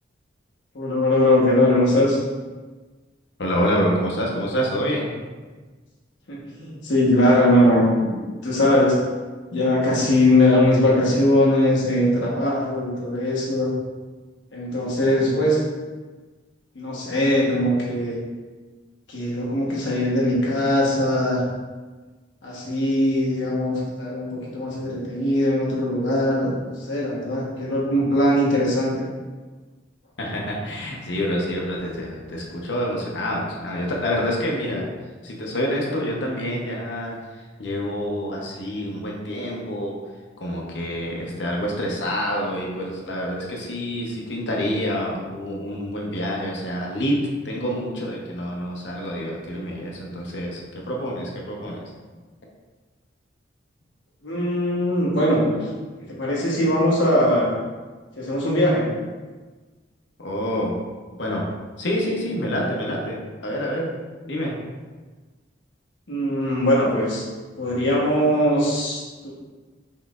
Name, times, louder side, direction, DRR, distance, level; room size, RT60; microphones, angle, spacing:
voice 1, 0.7-2.2 6.3-8.1 8.4-9.0 9.5-13.7 14.5-15.6 16.7-18.2 19.1-21.4 22.4-29.1 54.2-55.7 56.1-57.5 58.2-58.9 66.1-67.2 67.6-69.3, left 1 dB, 90° left, -4 dB, 1.2 m, -20 dB
voice 2, 3.4-5.1 30.2-34.9 35.2-37.1 37.6-40.0 40.4-47.2 47.4-51.8 60.2-60.7 61.2-61.4 61.8-63.9 64.3-64.5, equal, 75° left, -1 dB, 0.9 m, -27 dB
5.6 x 3.1 x 2.5 m, 1.3 s
head